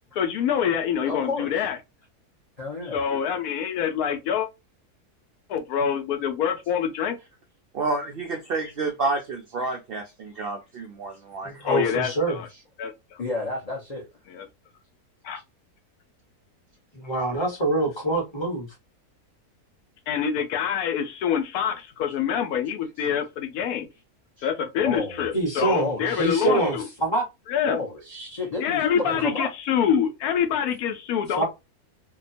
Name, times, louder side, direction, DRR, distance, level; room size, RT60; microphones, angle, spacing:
voice 1, 0.1-1.8 2.9-4.5 5.5-7.2 11.6-12.5 12.8-12.9 14.3-14.5 15.2-15.4 20.1-23.9 24.4-26.9 27.5-27.8 28.6-31.5, left 8 dB, 75° left, 1.0 m, -26 dB
voice 2, 1.0-1.5 2.6-3.0 12.5-12.6 13.2-14.0 24.8-25.3 25.8-26.8 27.6-29.5, left 3 dB, 40° left, 0.5 m, -31 dB
voice 3, 7.7-11.5, right 3 dB, 80° right, 0.5 m, -29 dB
voice 4, 11.4-12.4 16.9-18.7 25.3-27.3 29.0-29.2 31.4-31.5, right 2 dB, 20° left, 1.0 m, -25 dB
2.8 x 2.2 x 2.4 m
omnidirectional pair, 1.6 m